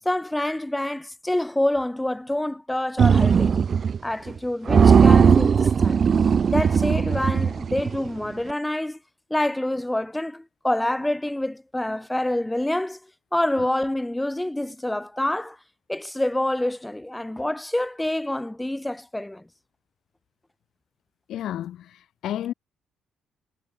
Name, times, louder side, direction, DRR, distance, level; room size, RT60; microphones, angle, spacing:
voice 1, 0.0-3.6 4.0-6.0 6.5-9.0 9.3-13.0 13.3-15.6 15.9-19.4, left 1 dB, 10° left, 3.0 m, -27 dB
sound 1, 3.0-4.0 4.3-4.4 4.7-8.1, right 6 dB, 45° right, 0.4 m, -18 dB
voice 2, 21.3-22.5, left 11 dB, 75° left, 3.4 m, -31 dB
cardioid pair, 90°, 0 cm